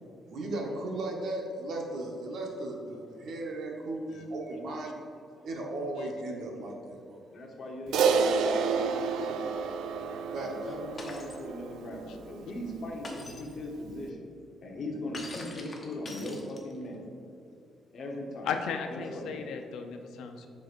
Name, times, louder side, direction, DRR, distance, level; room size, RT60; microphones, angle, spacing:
voice 1, 0.3-5.0 5.4-7.2 10.3-10.5, right 2 dB, 55° right, 0 dB, 1.0 m, -36 dB
voice 2, 7.3-9.5 10.3-14.3 14.6-17.0 17.9-18.5 18.9-19.4, left 1 dB, 45° left, 0 dB, 1.0 m, -39 dB
Crash cymbal, 7.9-12.5, right 5 dB, 85° right, 0.4 m, -29 dB
Shatter, 11.0-11.4 13.0-13.5 15.1-16.9, left 2 dB, 25° left, 0.8 m, -43 dB
voice 3, 18.4-20.5, left 6 dB, 85° left, 5 dB, 0.5 m, -35 dB
7.6 x 5.8 x 2.5 m, 2.7 s
cardioid pair, 170°, 0 cm